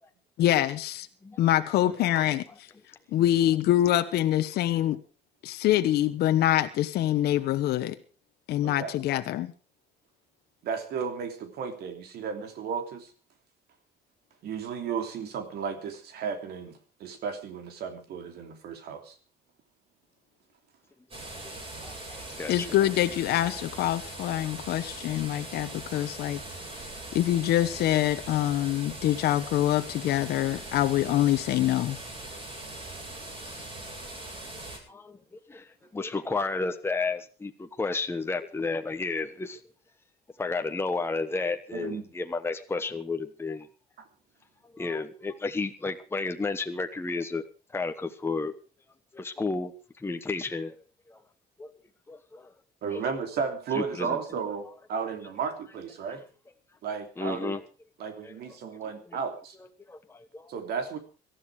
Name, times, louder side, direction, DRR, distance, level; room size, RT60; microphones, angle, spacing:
voice 1, 0.4-1.1 1.4-2.4 3.1-5.0 5.4-7.9 8.5-9.5 22.5-26.4 27.1-32.0 33.4-33.5, left 13 dB, 75° left, 9 dB, 1.2 m, -25 dB
voice 2, 8.6-8.9 10.6-13.1 14.4-16.7 17.0-19.1 41.7-42.0 44.0-44.1 52.8-56.2 56.8-57.6 58.0-59.6 60.5-61.0, right 6 dB, 70° right, 7 dB, 3.1 m, -34 dB
sound 1, 21.1-34.8, right 2 dB, 35° right, 7.7 m, -41 dB
voice 3, 21.8-22.7 34.9-35.7 35.9-39.6 40.4-43.7 44.7-47.4 47.7-48.5 49.1-49.7 50.0-50.7 51.1-51.2 51.6-51.7 52.1-52.5 52.9-53.0 53.7-54.2 57.2-57.6 58.0-58.3 59.9-60.5, left 3 dB, 15° left, 6 dB, 1.2 m, -32 dB
18.0 x 13.0 x 4.8 m, 0.36 s
cardioid pair, 110°, 17 cm